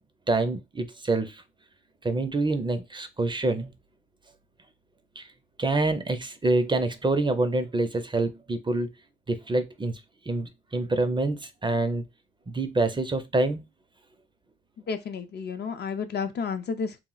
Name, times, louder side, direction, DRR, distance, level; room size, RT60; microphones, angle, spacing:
voice 1, 0.3-1.4 2.0-3.7 5.2-5.3 5.6-8.9 9.3-10.0 10.3-12.0 12.5-13.6, right 2 dB, 20° right, 0.5 m, -26 dB
voice 2, 14.9-17.0, left 5 dB, 50° left, 0.5 m, -31 dB
2.3 x 2.0 x 3.8 m
cardioid pair, 60°, 21 cm